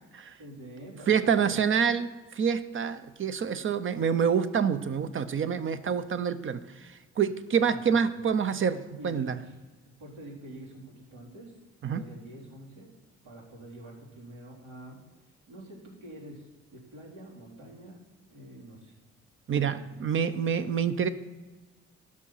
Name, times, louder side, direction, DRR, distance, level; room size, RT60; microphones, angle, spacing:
voice 1, 0.4-1.6 7.2-8.0 9.0-9.5 10.0-11.5 11.9-12.9 13.2-18.0 18.3-18.9 19.5-19.8, right 1 dB, 85° right, -5 dB, 3.5 m, -46 dB
voice 2, 1.1-9.4 11.8-12.0 19.5-21.1, right 7 dB, 40° right, 12 dB, 0.7 m, -27 dB
10.5 x 6.3 x 5.7 m, 1.2 s
cardioid pair, 90°, 30 cm